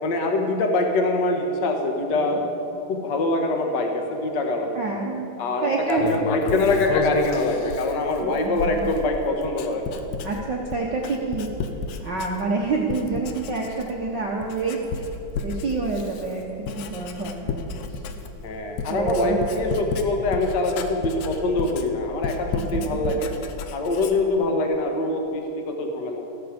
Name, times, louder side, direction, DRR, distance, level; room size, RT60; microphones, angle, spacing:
voice 1, 0.0-2.4 2.9-4.8 5.4-10.0 18.4-23.3 23.7-26.2, left 2 dB, 45° left, 3 dB, 1.5 m, -24 dB
voice 2, 4.7-5.3 5.6-6.1 8.2-8.3 8.6-8.9 10.2-11.5 12.0-15.1 15.4-18.0 18.9-19.4 22.9-23.1 24.2-24.4, right 4 dB, 65° right, -2 dB, 1.0 m, -28 dB
Writing, 5.9-12.6 12.9-14.1 14.4-24.4, left 5 dB, 75° left, 2.1 m, -32 dB
15.0 x 13.5 x 5.2 m, 2.9 s
omnidirectional pair, 3.6 m